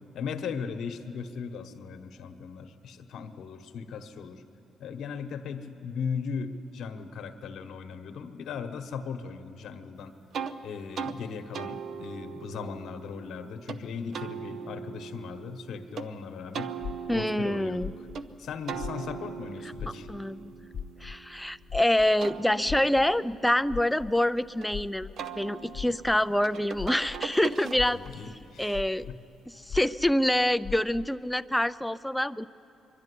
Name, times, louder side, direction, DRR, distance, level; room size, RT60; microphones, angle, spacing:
voice 1, 0.1-4.4 4.8-10.1 10.6-16.7 17.1-18.1 18.4-20.1 27.9-29.2, left 6 dB, 70° left, 7 dB, 1.1 m, -38 dB
sound 1, 10.3-10.6 10.9-11.2 11.5-13.8 14.1-16.1 16.5-18.3 18.7-21.6 22.0-24.7 25.2-28.2, right 6 dB, 65° right, 0.7 m, -40 dB
sound 2, 16.8-19.5 19.7-27.3 27.7-31.2, left 7 dB, 55° left, 0.6 m, -41 dB
voice 2, 17.1-17.9 20.1-20.5 21.0-25.1 25.3-28.0 28.6-29.1 29.5-32.4, left 1 dB, 5° left, 15 dB, 0.4 m, -26 dB
23.0 x 12.0 x 9.8 m, 3.0 s
cardioid pair, 90°, 0 cm